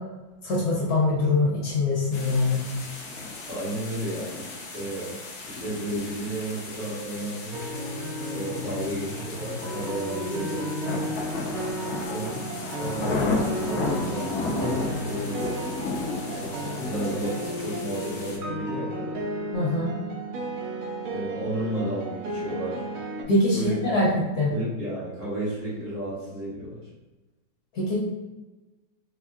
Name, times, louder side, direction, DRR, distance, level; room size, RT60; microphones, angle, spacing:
voice 1, 0.4-2.6 19.5-19.9 23.3-24.5 27.7-28.0, left 2 dB, 60° left, -5 dB, 1.3 m, -23 dB
sound 1, 2.1-18.4, left 3 dB, 85° left, 0.6 m, -34 dB
voice 2, 3.5-4.4 4.7-5.2 5.5-7.5 8.3-10.6 12.1-15.6 16.3-19.1 21.1-22.8 23.5-24.0 24.5-26.8, right 1 dB, 45° right, -10 dB, 1.5 m, -33 dB
sound 2, 7.5-23.2, equal, 90° right, 0.7 m, -33 dB
4.2 x 2.5 x 2.3 m, 1.1 s
omnidirectional pair, 2.1 m